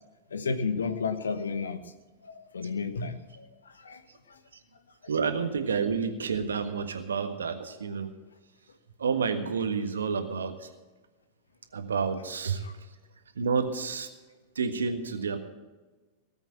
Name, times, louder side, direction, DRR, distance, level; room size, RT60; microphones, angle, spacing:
voice 1, 0.3-1.8 2.2-4.0 4.3-4.4 12.6-12.7, left 5 dB, 70° left, 11 dB, 1.2 m, -32 dB
voice 2, 5.1-8.1 9.0-10.7 11.7-12.6 13.3-14.1 14.5-15.4, right 5 dB, 70° right, 7 dB, 1.6 m, -29 dB
18.5 x 8.1 x 7.5 m, 1.2 s
figure-of-eight pair, 90°, 0 cm